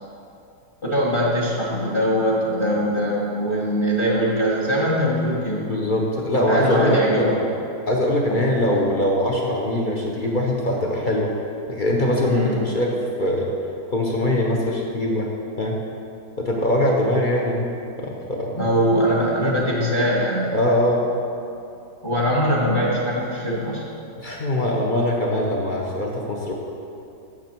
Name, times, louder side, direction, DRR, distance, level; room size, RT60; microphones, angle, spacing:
voice 1, 0.8-5.7 6.5-7.4 8.3-8.4 8.7-8.9 12.2-12.6 18.6-20.6 22.0-23.8, equal, 20° left, -3 dB, 0.9 m, -22 dB
voice 2, 5.7-7.4 7.9-11.3 11.7-12.9 13.2-13.5 13.9-15.3 15.6-15.8 16.4-17.7 18.0-18.6 19.4-19.6 20.5-21.1 24.2-26.5, left 1 dB, 50° left, -1 dB, 0.6 m, -22 dB
8.7 x 6.6 x 4.4 m, 2.6 s
omnidirectional pair, 1.8 m